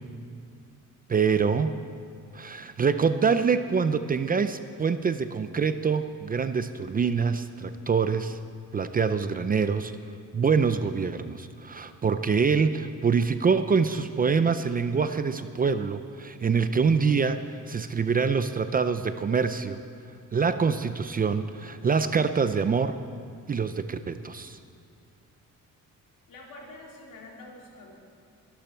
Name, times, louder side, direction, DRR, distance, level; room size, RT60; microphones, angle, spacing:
voice 1, 1.1-1.7 2.3-8.4 8.7-9.9 10.3-19.8 20.3-23.0 23.5-24.6, right 5 dB, 30° right, 10 dB, 0.4 m, -25 dB
voice 2, 26.3-28.0, left 2 dB, 80° left, -2 dB, 3.3 m, -46 dB
22.5 x 12.0 x 4.5 m, 2.4 s
wide cardioid pair, 175°, 33 cm